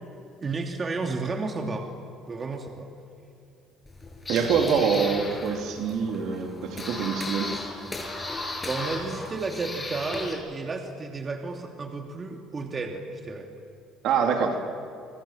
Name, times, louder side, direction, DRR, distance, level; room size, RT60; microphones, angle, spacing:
voice 1, 0.4-1.9 2.3-2.9 8.6-13.5, right 3 dB, 35° right, 2 dB, 2.9 m, -32 dB
sound 1, 3.9-10.3, left 2 dB, 15° left, 7.6 m, -36 dB
voice 2, 4.3-7.5 14.0-14.6, right 6 dB, 70° right, 3 dB, 3.6 m, -25 dB
29.0 x 26.5 x 7.6 m, 2.6 s
supercardioid pair, 80°, 0 cm